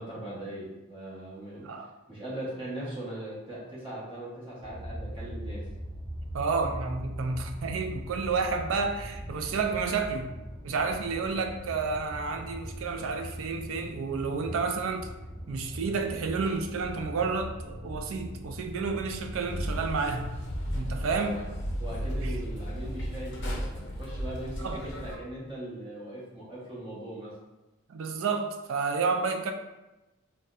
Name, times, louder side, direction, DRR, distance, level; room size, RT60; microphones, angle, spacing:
voice 1, 0.0-1.7 2.1-5.6 21.0-21.4 21.8-27.3, right 1 dB, 25° right, -7 dB, 1.0 m, -39 dB
sound 1, 4.6-21.1, equal, ahead, 1.4 m, -41 dB
voice 2, 6.3-10.3 10.6-15.1 15.5-20.3 20.7-21.3 22.2-22.4 24.6-24.8 27.9-29.5, right 4 dB, 65° right, 5 dB, 0.4 m, -30 dB
sound 2, 19.5-25.2, equal, 55° left, 0.6 m, -34 dB
4.0 x 2.1 x 2.4 m, 1.0 s
head